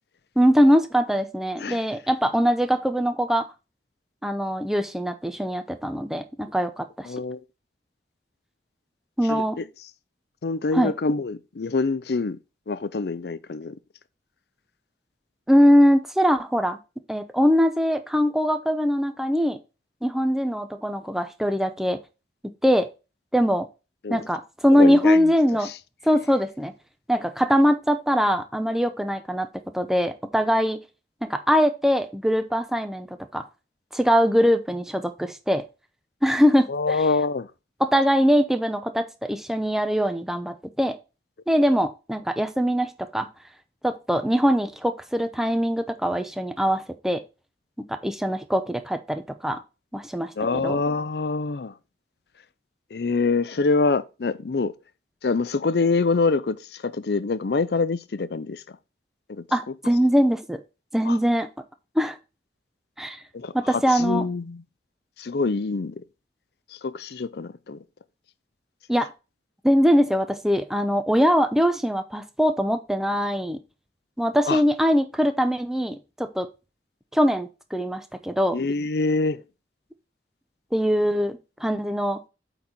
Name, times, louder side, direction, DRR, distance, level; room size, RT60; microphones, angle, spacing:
voice 1, 0.4-3.5 4.2-7.1 9.2-9.6 10.7-10.9 15.5-16.8 17.1-19.6 20.0-22.0 22.6-22.9 23.3-23.7 24.1-25.7 26.0-26.7 27.1-29.5 29.7-30.8 31.2-33.1 33.3-33.5 33.9-35.7 36.2-36.7 37.8-41.0 41.5-43.3 43.8-47.2 47.9-49.6 49.9-50.8 59.5-60.6 60.9-61.5 62.0-62.2 63.0-63.2 63.5-64.3 68.9-69.1 69.6-73.6 74.2-76.5 77.1-78.6 80.7-82.2, equal, ahead, 0.7 m, -22 dB
voice 2, 7.1-7.4 9.3-9.6 10.4-12.4 12.7-13.8 24.0-24.2 24.7-25.2 36.7-37.5 50.4-51.7 52.9-54.7 55.2-58.6 59.3-59.4 61.1-61.2 63.3-64.6 65.2-66.0 66.8-67.8 74.5-74.6 78.5-79.4, left 3 dB, 65° left, 0.5 m, -25 dB
8.4 x 4.1 x 4.4 m
head